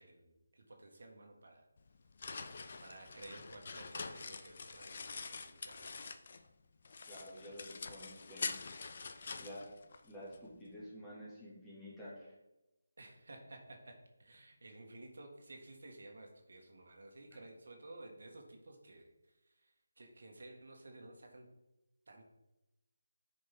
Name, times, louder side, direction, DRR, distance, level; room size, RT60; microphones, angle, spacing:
voice 1, 0.0-1.6 2.8-6.1 13.0-21.5 22.1-22.3, right 2 dB, 65° right, 2 dB, 1.6 m, -54 dB
sound 1, 1.8-6.5 6.8-10.4, left 4 dB, 50° left, 0.6 m, -45 dB
voice 2, 7.1-8.5 9.4-9.7 10.0-12.3, equal, 5° left, -8 dB, 2.1 m, -50 dB
9.7 x 5.2 x 3.6 m, 0.97 s
figure-of-eight pair, 160°, 0 cm